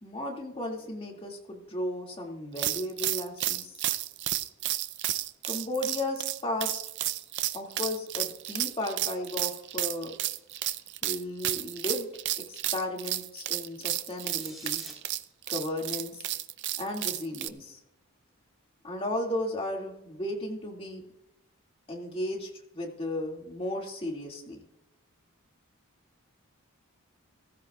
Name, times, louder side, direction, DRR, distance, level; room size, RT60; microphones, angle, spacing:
voice 1, 0.0-3.8 5.5-6.8 7.5-10.1 11.0-12.1 12.5-14.8 15.5-16.2 16.8-17.8 18.8-21.0 21.9-24.6, left 1 dB, 25° left, 0 dB, 2.3 m, -35 dB
sound 1, 2.6-17.5, right 14 dB, 55° right, 0.5 m, -32 dB
sound 2, 14.1-14.9, equal, ahead, 4.0 m, -48 dB
16.0 x 15.0 x 2.4 m, 0.88 s
head